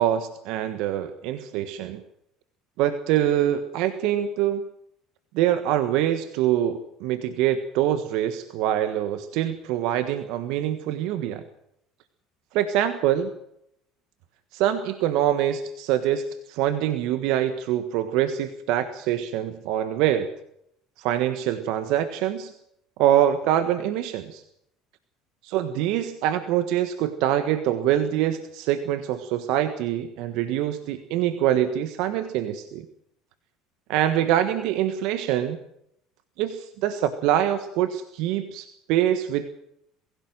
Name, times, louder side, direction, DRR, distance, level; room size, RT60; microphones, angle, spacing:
voice 1, 0.0-2.0 2.8-4.6 5.3-11.4 12.5-13.3 14.5-20.3 21.0-22.5 23.0-24.4 25.4-32.8 33.9-35.6 36.4-39.5, right 11 dB, 70° right, 10 dB, 1.4 m, -24 dB
22.5 x 16.5 x 7.7 m, 0.75 s
hypercardioid pair, 75°, 0 cm